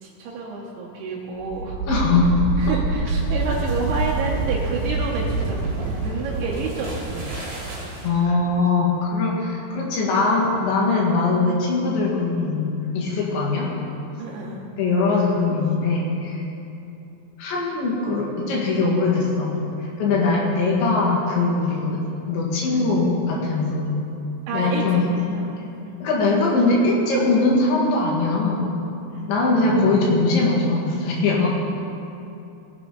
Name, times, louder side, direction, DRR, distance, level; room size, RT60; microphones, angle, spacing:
voice 1, 0.0-1.8 2.6-7.3 14.2-14.6 20.2-20.4 22.7-22.9 24.5-25.5 25.8-26.0 29.1-29.3, right 4 dB, 75° right, -4 dB, 2.5 m, -30 dB
sound 1, 1.4-8.2, right 3 dB, 30° right, 2.6 m, -26 dB
voice 2, 1.9-2.3 2.7-2.8 8.0-13.7 14.8-16.4 17.4-22.0 22.3-23.9 24.5-25.1 26.0-28.7 29.1-31.5, left 3 dB, 70° left, -3 dB, 3.8 m, -21 dB
18.0 x 9.0 x 3.9 m, 2.8 s
omnidirectional pair, 5.7 m